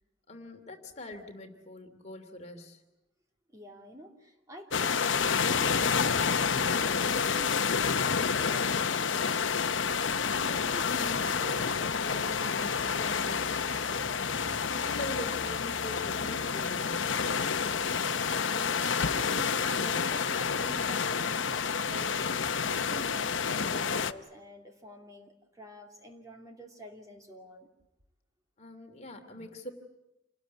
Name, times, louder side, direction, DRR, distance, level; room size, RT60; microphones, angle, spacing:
voice 1, 0.3-2.8 10.2-14.2 14.7-17.1 28.6-29.7, left 1 dB, 35° left, 4 dB, 2.8 m, -43 dB
voice 2, 3.5-8.9 18.0-22.2 22.6-27.7, equal, 15° right, 2 dB, 2.7 m, -48 dB
sound 1, 4.7-24.1, left 6 dB, 70° left, 0.9 m, -29 dB
28.0 x 20.0 x 9.4 m, 0.96 s
head